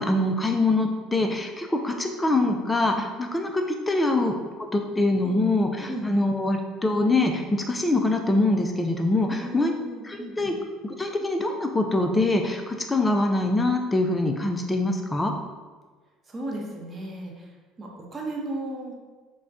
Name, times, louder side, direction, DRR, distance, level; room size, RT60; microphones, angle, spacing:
voice 1, 0.0-4.3 4.7-9.7 10.0-10.6 10.8-15.3, left 2 dB, 15° left, 4 dB, 0.3 m, -24 dB
voice 2, 5.9-6.3 9.3-10.5 16.3-17.5 17.8-18.9, right 2 dB, 30° right, -1 dB, 0.7 m, -35 dB
4.5 x 2.1 x 2.6 m, 1.4 s
supercardioid pair, 95°, 0 cm